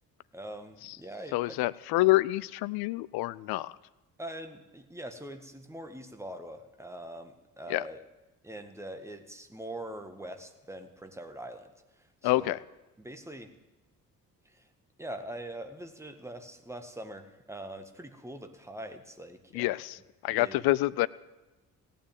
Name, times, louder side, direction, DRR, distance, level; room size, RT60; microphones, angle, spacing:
voice 1, 0.3-1.6 4.2-8.0 8.4-11.7 12.0-12.6 13.0-13.5 14.5-14.7 15.0-19.7 20.3-20.7, right 1 dB, 5° right, 6 dB, 1.9 m, -43 dB
voice 2, 1.3-3.8 7.7-7.9 12.2-12.6 19.5-21.1, left 18 dB, 50° left, 18 dB, 0.6 m, -27 dB
16.0 x 9.1 x 9.4 m, 1.1 s
figure-of-eight pair, 45°, 47 cm